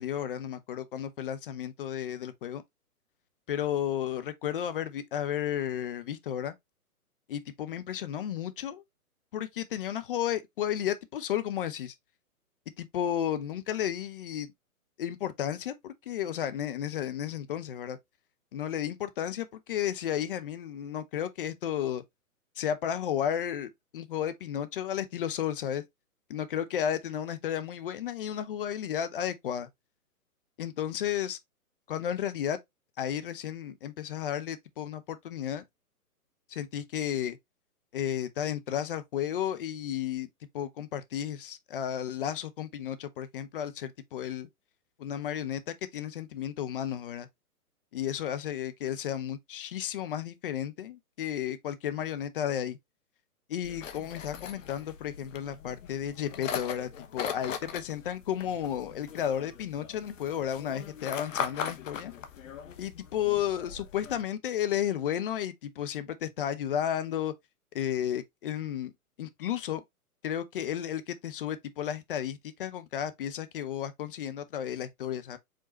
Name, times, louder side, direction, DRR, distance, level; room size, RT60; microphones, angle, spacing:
voice 1, 0.0-2.6 3.5-6.5 7.3-8.8 9.3-11.9 12.8-14.5 15.0-18.0 18.5-22.0 22.6-25.8 26.3-29.7 30.6-31.4 31.9-32.6 33.0-35.6 36.5-37.4 37.9-40.3 40.5-44.5 45.0-47.3 47.9-52.8 53.5-62.1 62.8-67.3 67.7-68.9 69.2-69.8 70.2-75.4, left 10 dB, 35° left, 0.7 m, -33 dB
sound 1, 53.6-64.2, left 7 dB, 55° left, 1.1 m, -40 dB
5.0 x 3.7 x 2.9 m
hypercardioid pair, 135°, 45 cm